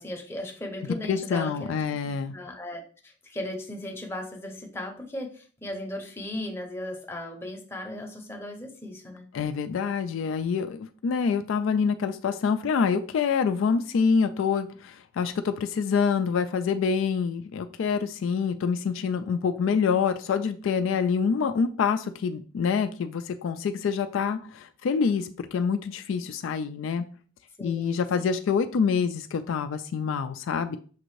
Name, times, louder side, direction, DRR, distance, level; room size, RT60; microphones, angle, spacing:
voice 1, 0.0-1.8 2.0-9.2 19.3-19.4 27.6-28.3, left 1 dB, 10° left, 2 dB, 0.7 m, -37 dB
voice 2, 1.1-2.3 9.3-27.1 27.6-30.8, left 6 dB, 65° left, 9 dB, 0.3 m, -26 dB
6.4 x 2.5 x 3.1 m, 0.42 s
head